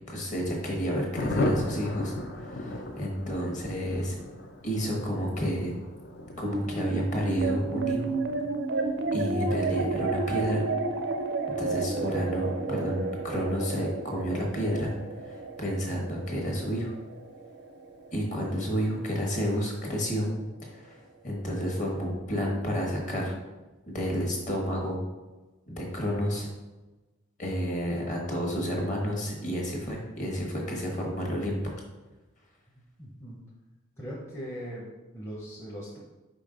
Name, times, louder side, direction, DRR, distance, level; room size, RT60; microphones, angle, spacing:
voice 1, 0.1-2.1 2.4-4.2 4.6-5.7 6.4-8.2 9.1-10.6 11.5-14.9 15.2-16.9 18.1-20.3 20.6-23.4 23.9-25.0 25.7-26.5 27.4-31.6, equal, 35° left, -1 dB, 1.2 m, -30 dB
Thunder, 1.1-17.3 17.6-17.7 17.9-18.1 18.3-18.7, left 1 dB, 50° left, 0.6 m, -38 dB
sound 1, 6.4-19.0, right 3 dB, 55° right, 0.4 m, -32 dB
voice 2, 33.0-33.4 34.0-36.0, equal, 10° left, -6 dB, 0.7 m, -40 dB
5.2 x 4.8 x 3.8 m, 1.1 s
head